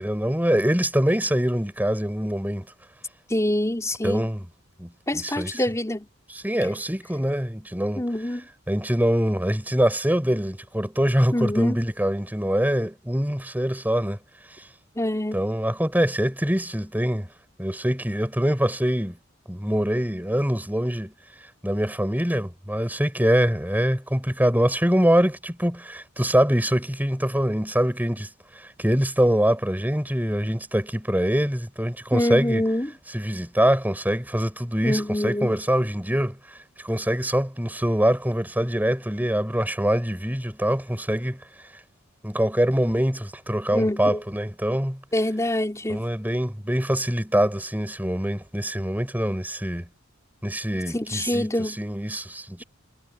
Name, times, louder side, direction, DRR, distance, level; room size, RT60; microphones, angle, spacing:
voice 1, 0.0-2.7 4.0-4.5 4.8-5.6 6.3-8.1 8.7-14.2 15.3-17.3 17.6-19.2 19.5-21.1 21.6-28.3 28.5-32.7 33.1-36.4 36.8-41.4 42.2-45.0 45.9-49.9 50.4-52.6, equal, 10° right, 6.7 m, -24 dB
voice 2, 3.3-4.3 5.1-6.1 8.0-8.4 11.3-11.8 15.0-15.4 32.1-32.9 34.8-35.5 43.7-44.2 45.1-46.1 50.9-51.8, left 1 dB, 15° left, 3.8 m, -25 dB
head